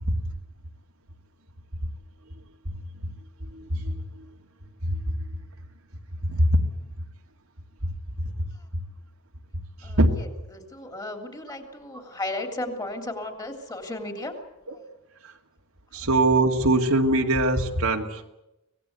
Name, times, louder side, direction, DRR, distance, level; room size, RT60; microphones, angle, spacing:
voice 1, 3.4-4.3 4.8-5.1 6.2-6.6 7.8-8.8 9.5-10.2 15.2-15.3 15.9-18.3, right 1 dB, 75° right, 3 dB, 2.4 m, -24 dB
voice 2, 9.8-14.4 14.7-14.8, left 2 dB, 20° left, 5 dB, 3.3 m, -35 dB
25.5 x 19.0 x 8.3 m, 0.92 s
head